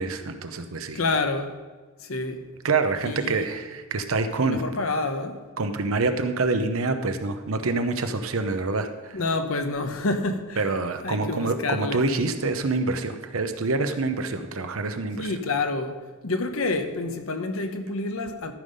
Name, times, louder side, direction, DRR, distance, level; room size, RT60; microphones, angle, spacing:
voice 1, 0.0-1.0 2.6-4.6 5.6-9.2 10.6-15.3, right 3 dB, 70° right, 0.8 m, -26 dB
voice 2, 0.9-1.5 2.0-2.5 3.0-3.5 4.4-5.4 9.1-10.7 11.0-12.0 15.2-18.5, left 3 dB, 75° left, 1.0 m, -28 dB
13.5 x 5.6 x 5.3 m
head